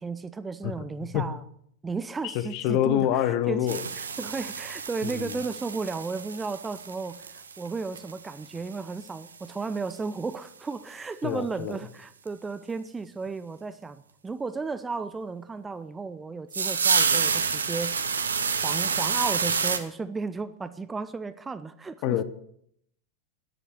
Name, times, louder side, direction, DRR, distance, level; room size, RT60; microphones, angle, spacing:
voice 1, 0.0-1.4 1.8-18.0 18.6-22.2, right 4 dB, 15° right, 13 dB, 0.7 m, -34 dB
voice 2, 2.2-3.8 5.0-5.4 11.2-11.8 22.0-22.2, left 11 dB, 45° left, 14 dB, 1.1 m, -26 dB
sound 1, 3.7-8.8 9.1-9.2 9.5-9.6 9.8-9.9 10.3-10.4 12.3-12.4 16.5-19.8, right 5 dB, 70° right, 1.1 m, -28 dB
12.5 x 10.0 x 8.1 m, 0.70 s
figure-of-eight pair, 90°, 0 cm